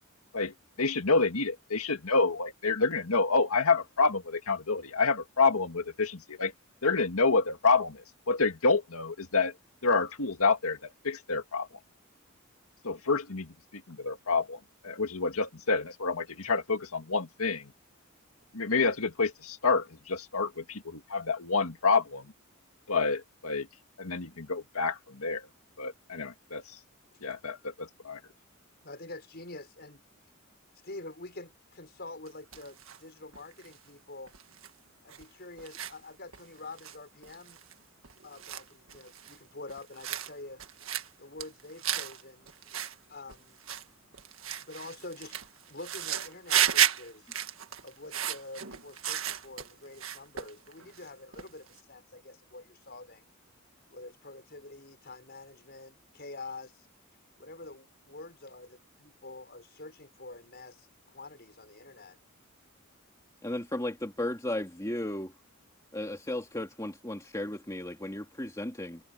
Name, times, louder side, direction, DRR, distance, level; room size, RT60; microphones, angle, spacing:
voice 1, 0.3-6.5 6.8-9.6 9.8-11.7 12.8-17.7 18.5-22.3 22.9-23.7 24.0-25.5 25.8-26.8 27.2-28.2, left 4 dB, 85° left, 1.9 m, -28 dB
voice 2, 28.8-30.0 30.8-34.3 35.0-37.6 38.2-40.6 41.2-42.5 43.1-43.6 44.5-45.4 45.7-47.3 47.8-53.3 53.9-56.9 57.4-57.8 58.1-62.2, left 2 dB, 50° left, 6.2 m, -46 dB
sound 1, 32.3-33.0 33.3-33.7 34.3-34.7 35.1-35.2 35.6-35.9 36.3-36.4 36.8-37.0 37.2-37.7 38.0-39.4 39.7-40.3 40.6-41.1 41.4-42.2 42.5-42.9 43.3-43.8 44.1-49.7 50.0-51.1 51.3-51.8, right 10 dB, 65° right, 1.7 m, -33 dB
voice 3, 63.4-65.3 65.9-69.0, left 1 dB, 15° left, 2.8 m, -35 dB
head